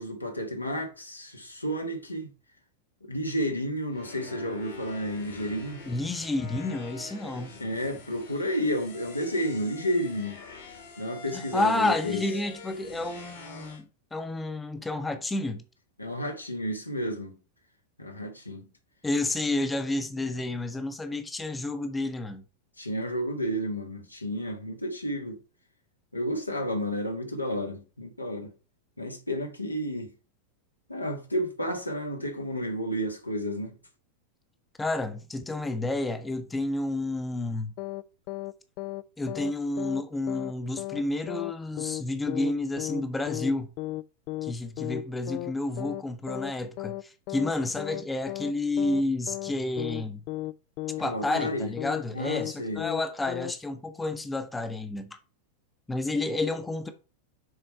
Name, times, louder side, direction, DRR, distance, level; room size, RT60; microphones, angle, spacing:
voice 1, 0.0-2.3 3.0-5.8 7.6-10.4 11.0-12.2 16.0-17.4 18.0-18.6 22.8-25.4 26.1-28.5 29.0-30.1 30.9-33.7 51.0-51.7 52.1-52.8, equal, 85° left, 1.3 m, -31 dB
sound 1, 3.9-13.8, left 3 dB, 60° left, 1.8 m, -46 dB
voice 2, 5.8-7.6 11.3-15.6 19.0-22.4 34.8-37.7 39.2-43.7 44.4-50.2 51.0-55.2 55.9-56.9, left 2 dB, 10° left, 0.8 m, -30 dB
sound 2, 37.8-38.0 38.3-38.5 38.8-39.0 39.3-39.5 39.8-40.0 40.3-40.5 40.8-41.0 41.3-41.5 41.8-42.0 42.3-42.5 42.8-43.0 43.3-43.5 43.8-44.0 44.3-44.5 44.8-45.0 45.3-45.5 45.8-46.0 46.3-46.5 46.8-47.0 47.3-47.5 47.8-48.0 48.3-48.5 48.8-49.0 49.3-49.5 49.8-50.0 50.3-50.5 50.8-51.0 51.3-51.5 51.8-52.0 52.3-52.5 52.8-53.0 53.3-53.5, left 18 dB, 45° left, 0.3 m, -34 dB
6.6 x 4.3 x 4.5 m
figure-of-eight pair, 90°, 0 cm